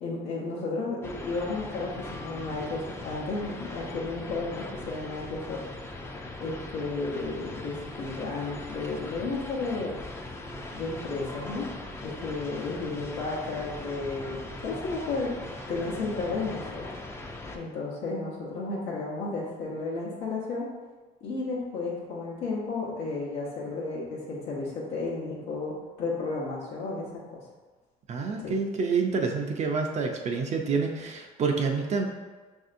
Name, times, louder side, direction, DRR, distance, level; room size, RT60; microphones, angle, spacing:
voice 1, 0.0-5.6 6.4-10.0 10.7-11.7 12.0-15.3 15.7-16.8 17.5-20.7 21.2-27.4 28.4-28.5, left 3 dB, 90° left, -6 dB, 0.9 m, -33 dB
sound 1, 1.0-17.6, left 2 dB, 15° left, 0.4 m, -40 dB
voice 2, 28.1-32.1, right 4 dB, 40° right, 2 dB, 0.5 m, -28 dB
5.4 x 2.7 x 2.5 m, 1.3 s
cardioid pair, 110°, 17 cm